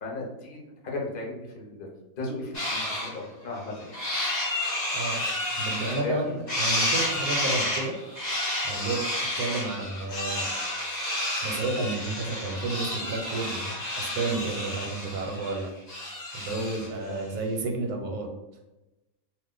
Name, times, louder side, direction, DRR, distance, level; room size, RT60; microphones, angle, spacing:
voice 1, 0.0-1.9 2.2-3.9 6.0-6.2 17.1-17.2, left 2 dB, 50° left, -1 dB, 0.6 m, -35 dB
sound 1, 2.5-3.1 3.5-6.2 6.5-16.9, left 1 dB, 35° left, 0.9 m, -30 dB
voice 2, 4.9-5.2 5.6-7.9 8.6-9.0 9.4-10.5 11.4-15.7 16.3-18.3, right 3 dB, 85° right, 2 dB, 1.1 m, -31 dB
2.5 x 2.1 x 3.7 m, 0.99 s
omnidirectional pair, 1.6 m